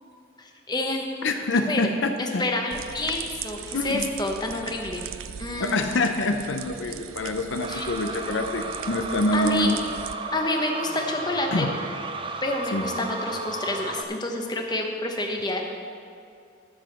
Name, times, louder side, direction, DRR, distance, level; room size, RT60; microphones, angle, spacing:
voice 1, 0.4-1.2 1.7-1.8 2.2-5.1 5.4-5.8 7.7-7.9 9.3-9.7 10.3-11.7 12.4-15.6, left 2 dB, 20° left, 2 dB, 0.9 m, -28 dB
voice 2, 1.2-2.4 3.7-4.1 5.6-9.8 11.5-11.8 12.7-12.9, left 2 dB, 65° left, 6 dB, 0.6 m, -26 dB
sound 1, 2.7-10.1, right 9 dB, 85° right, 0.4 m, -39 dB
sound 2, 7.6-14.0, right 3 dB, 25° right, 0.4 m, -34 dB
11.5 x 6.3 x 6.7 m, 2.4 s
head